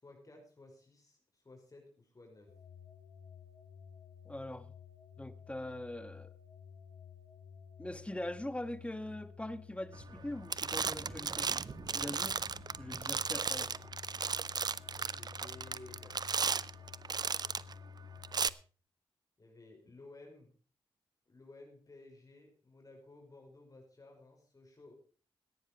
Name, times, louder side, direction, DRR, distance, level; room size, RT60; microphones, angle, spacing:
voice 1, 0.0-2.5 10.1-10.2 11.0-12.2 13.2-13.4 14.9-16.2 19.4-20.5 21.3-24.9, left 2 dB, 35° left, 2 dB, 5.2 m, -56 dB
sound 1, 2.5-18.6, left 7 dB, 70° left, 2.6 m, -53 dB
voice 2, 4.2-4.7 5.2-6.3 7.8-11.5 11.9-12.3 12.8-13.7, left 1 dB, 10° left, 13 dB, 1.4 m, -42 dB
sound 2, 10.0-10.2 10.5-17.7 18.2-18.5, right 5 dB, 45° right, 0.5 m, -35 dB
15.0 x 10.0 x 5.0 m, 0.40 s
cardioid pair, 50°, 10 cm